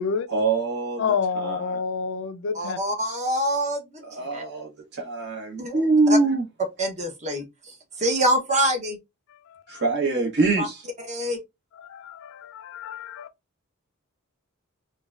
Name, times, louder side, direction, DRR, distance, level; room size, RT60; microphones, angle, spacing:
voice 1, 0.3-1.1 1.4-1.8 4.0-6.4 9.7-10.9, right 3 dB, 50° right, 1.3 m, -24 dB
voice 2, 1.0-2.8 9.7-9.8 11.8-13.3, left 6 dB, 60° left, 0.4 m, -29 dB
voice 3, 2.5-4.0 4.3-4.4 5.6-5.8 6.8-7.4 8.0-9.0 10.6-10.7 11.1-11.4, right 1 dB, 35° right, 0.9 m, -25 dB
3.9 x 2.3 x 2.4 m
head